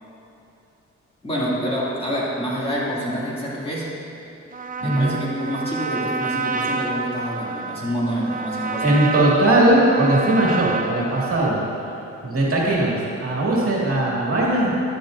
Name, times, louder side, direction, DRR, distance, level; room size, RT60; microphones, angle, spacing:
voice 1, 1.2-4.0 4.8-9.0, equal, 20° left, -7 dB, 2.5 m, -27 dB
Trumpet, 4.5-11.7, right 4 dB, 30° right, 0.6 m, -28 dB
voice 2, 4.8-5.1 8.8-11.6 12.2-14.7, right 1 dB, 50° right, -5 dB, 2.2 m, -19 dB
12.0 x 11.0 x 2.6 m, 3.0 s
cardioid pair, 100°, 29 cm